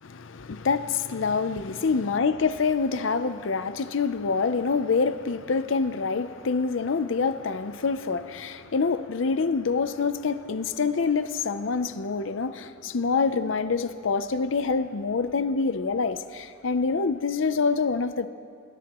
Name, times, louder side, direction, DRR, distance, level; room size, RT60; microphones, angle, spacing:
voice 1, 0.0-18.3, left 4 dB, 80° left, 0.6 m, -26 dB
26.0 x 18.5 x 3.0 m
head